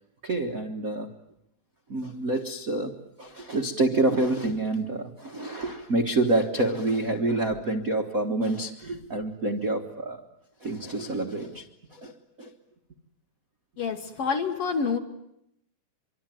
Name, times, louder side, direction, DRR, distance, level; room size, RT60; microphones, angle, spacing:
voice 1, 0.2-1.2 1.9-10.3 10.6-12.5, right 2 dB, 70° right, 3 dB, 0.8 m, -28 dB
voice 2, 13.8-15.0, left 5 dB, 55° left, 6 dB, 1.9 m, -27 dB
25.0 x 24.0 x 9.2 m, 0.78 s
omnidirectional pair, 4.1 m